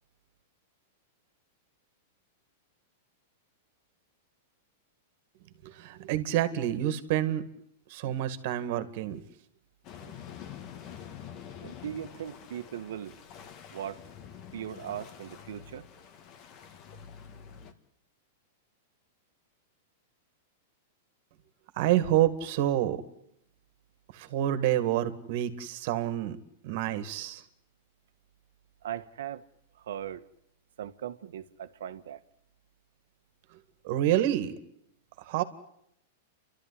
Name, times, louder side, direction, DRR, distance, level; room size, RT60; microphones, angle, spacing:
voice 1, 5.6-7.5 7.9-9.2 10.0-10.1 21.8-23.0 24.1-26.4 26.6-27.4 33.8-34.6 35.2-35.4, right 12 dB, 55° right, 2.0 m, -28 dB
sound 1, 9.8-17.7, left 8 dB, 40° left, 1.9 m, -47 dB
voice 2, 11.6-13.2 13.7-14.0 14.5-15.9 28.8-29.4 29.7-30.3 30.8-32.2, right 10 dB, 80° right, 1.3 m, -39 dB
29.5 x 13.0 x 10.0 m
supercardioid pair, 140°, 0 cm